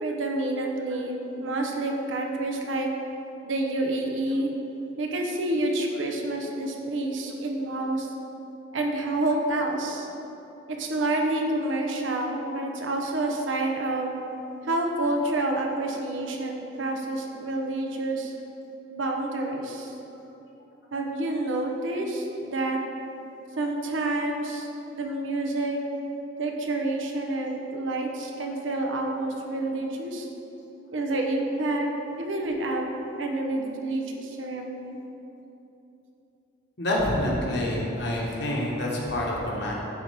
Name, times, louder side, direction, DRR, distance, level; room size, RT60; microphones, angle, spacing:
voice 1, 0.0-2.9 3.4-4.5 5.0-8.1 8.7-10.1 10.7-14.1 14.6-18.3 18.9-19.9 20.9-22.8 23.6-24.7 24.9-25.8 26.4-30.3 30.9-31.9 32.2-32.9 33.2-35.0, right 2 dB, 80° right, 1 dB, 0.8 m, -28 dB
voice 2, 36.8-39.7, left 1 dB, 60° left, -3 dB, 1.3 m, -27 dB
10.5 x 4.3 x 3.5 m, 3.0 s
head